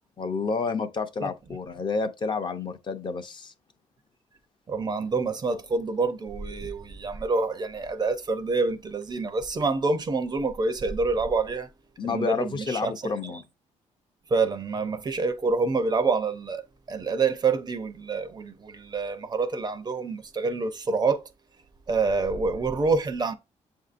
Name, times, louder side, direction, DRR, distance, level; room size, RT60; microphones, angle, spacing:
voice 1, 0.2-3.5 12.0-13.4, left 5 dB, 40° left, 0.5 m, -30 dB
voice 2, 4.7-11.7 12.0-12.9 13.2-13.3 14.3-16.6 16.9-21.2 21.9-23.3, right 4 dB, 35° right, 0.5 m, -27 dB
7.3 x 2.6 x 2.5 m
cardioid pair, 105°, 13 cm